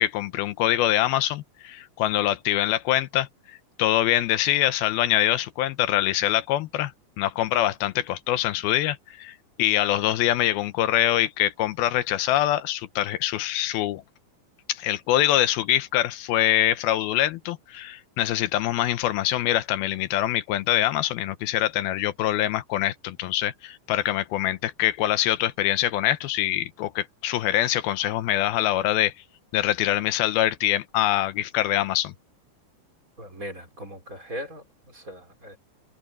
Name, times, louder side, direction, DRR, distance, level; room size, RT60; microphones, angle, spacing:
voice 1, 0.0-3.3 3.8-6.9 7.2-14.0 14.7-29.1 29.5-32.1, left 13 dB, 80° left, 2.7 m, -24 dB
voice 2, 33.2-35.6, equal, 20° right, 5.3 m, -39 dB
omnidirectional pair, 4.3 m